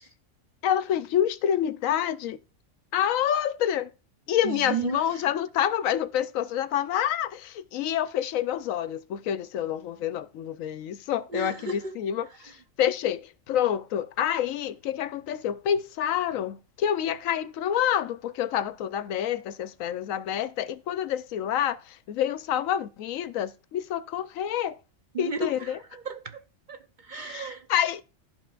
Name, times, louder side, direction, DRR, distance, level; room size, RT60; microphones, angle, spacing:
voice 1, 0.6-2.4 2.9-3.9 4.3-12.3 12.8-24.8 25.2-25.8 27.1-28.0, left 10 dB, 85° left, 1.0 m, -28 dB
voice 2, 4.4-5.3 11.3-11.9 12.4-12.5 25.1-26.4 26.7-27.7, right 4 dB, 45° right, 0.7 m, -34 dB
15.5 x 5.9 x 2.4 m
omnidirectional pair, 1.4 m